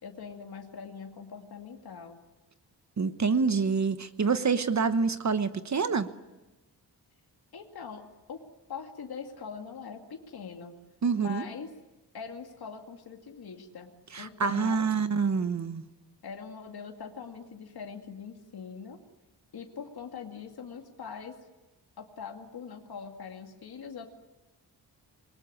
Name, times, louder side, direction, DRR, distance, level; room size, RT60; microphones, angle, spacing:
voice 1, 0.0-2.2 7.5-8.4 8.7-10.7 11.1-11.7 12.1-13.9 14.2-14.8 16.2-19.0 19.5-21.4 22.0-24.1, left 6 dB, 60° left, 3 dB, 2.4 m, -42 dB
voice 2, 3.0-6.1 11.0-11.4 14.1-15.8, right 5 dB, 40° right, 11 dB, 1.1 m, -27 dB
27.5 x 21.0 x 9.9 m, 1.1 s
wide cardioid pair, 145°, 41 cm